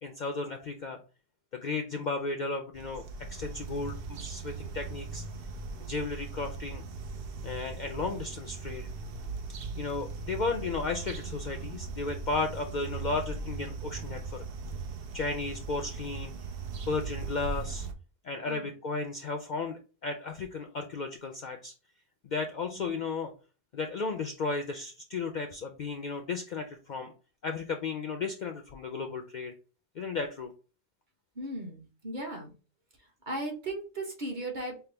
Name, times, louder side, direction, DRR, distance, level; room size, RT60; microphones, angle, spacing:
voice 1, 0.0-1.0 1.5-3.0 3.3-5.2 5.9-6.8 7.4-8.9 9.8-14.4 15.1-16.3 16.9-17.9 18.2-21.7 22.2-23.3 23.7-27.1 27.4-29.5 30.0-30.5, left 3 dB, 60° left, 4 dB, 0.5 m, -34 dB
sound 1, 2.7-17.9, right 4 dB, 60° right, 0.8 m, -39 dB
voice 2, 31.3-32.5 33.3-34.8, right 1 dB, 45° right, 0 dB, 1.2 m, -37 dB
5.6 x 2.0 x 3.3 m, 0.35 s
omnidirectional pair, 1.2 m